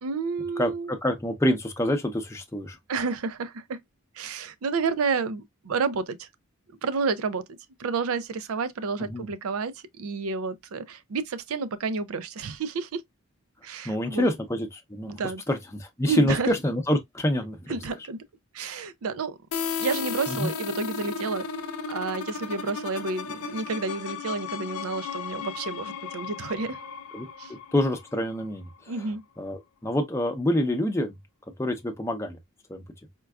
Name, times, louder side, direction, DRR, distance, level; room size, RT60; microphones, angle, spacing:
voice 1, 0.0-0.9 2.9-3.8 4.1-6.3 6.8-7.4 7.8-13.0 13.6-14.3 15.1-15.4 16.1-16.5 17.7-18.2 18.5-19.4 19.8-21.4 21.9-26.8 27.4-27.5 28.9-29.2, right 4 dB, 75° right, 0.5 m, -30 dB
voice 2, 0.6-2.8 9.0-9.3 13.8-15.1 15.5-17.8 20.3-20.5 27.1-27.3 27.7-28.7 29.4-31.1 31.6-32.4 32.7-32.8, left 1 dB, 15° left, 0.6 m, -26 dB
sound 1, 19.5-29.1, left 6 dB, 85° left, 0.5 m, -35 dB
4.4 x 2.3 x 2.3 m
head